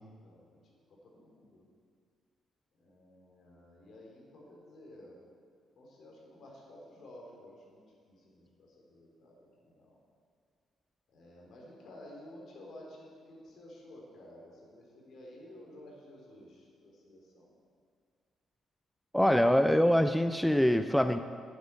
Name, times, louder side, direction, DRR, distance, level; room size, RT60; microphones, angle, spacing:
voice 1, 0.2-0.6 0.9-1.7 2.8-5.2 5.8-10.0 11.1-17.6, left 1 dB, 65° left, -2 dB, 3.6 m, -53 dB
voice 2, 19.1-21.2, equal, 5° left, 9 dB, 0.4 m, -24 dB
9.5 x 8.2 x 8.2 m, 2.1 s
cardioid pair, 90°, 0 cm